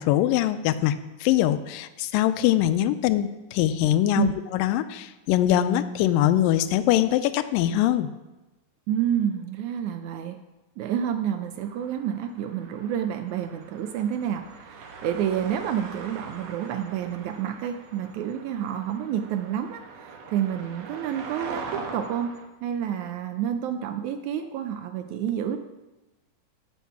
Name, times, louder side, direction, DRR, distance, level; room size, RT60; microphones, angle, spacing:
voice 1, 0.0-8.1, left 12 dB, 85° left, 12 dB, 2.2 m, -23 dB
voice 2, 8.9-10.4 10.8-22.3 22.6-25.6, right 9 dB, 80° right, 8 dB, 1.7 m, -29 dB
sound 1, 11.6-22.4, right 4 dB, 65° right, 1.8 m, -42 dB
11.5 x 8.0 x 4.7 m, 1.1 s
omnidirectional pair, 4.0 m